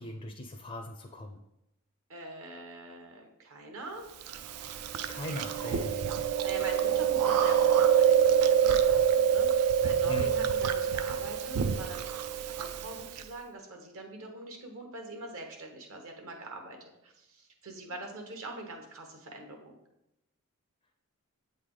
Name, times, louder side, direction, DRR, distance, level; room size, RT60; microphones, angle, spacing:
voice 1, 0.0-1.4 5.1-6.1 10.1-10.3, left 1 dB, 25° left, 4 dB, 0.4 m, -40 dB
voice 2, 2.1-4.1 6.4-12.2 12.5-19.7, right 2 dB, 65° right, 2 dB, 1.0 m, -44 dB
Chewing mastication, 4.3-13.2, right 8 dB, 90° right, 0.4 m, -26 dB
7.7 x 3.3 x 3.8 m, 0.87 s
head